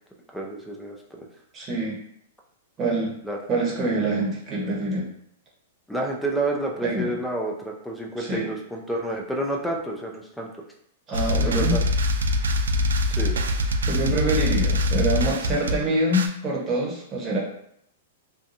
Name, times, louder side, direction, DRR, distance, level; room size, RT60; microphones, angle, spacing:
voice 1, 0.3-1.3 3.2-3.4 5.9-10.5 11.4-11.8 13.1-13.4, right 1 dB, 5° left, -1 dB, 0.5 m, -29 dB
voice 2, 1.5-2.0 2.8-3.1 3.5-5.1 6.8-7.1 8.2-8.5 11.1-11.8 13.9-17.4, right 1 dB, 25° right, -3 dB, 1.0 m, -25 dB
sound 1, 11.1-16.3, left 1 dB, 85° right, 0.3 m, -23 dB
2.7 x 2.3 x 2.6 m, 0.70 s
hypercardioid pair, 125°, 0 cm